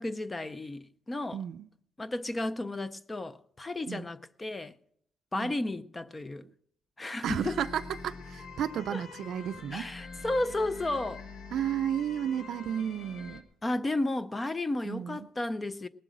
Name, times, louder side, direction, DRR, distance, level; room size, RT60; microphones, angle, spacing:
voice 1, 0.0-1.4 2.0-4.8 5.3-6.5 7.0-7.6 8.9-9.0 9.7-11.2 13.6-15.9, left 2 dB, 15° left, 0.5 m, -33 dB
voice 2, 1.3-1.7 3.9-4.1 5.4-5.5 7.2-9.9 11.5-13.5 14.8-15.3, right 9 dB, 60° right, 0.4 m, -33 dB
sound 1, 7.3-13.4, left 4 dB, 55° left, 1.6 m, -45 dB
19.0 x 7.8 x 6.2 m
cardioid pair, 150°, 0 cm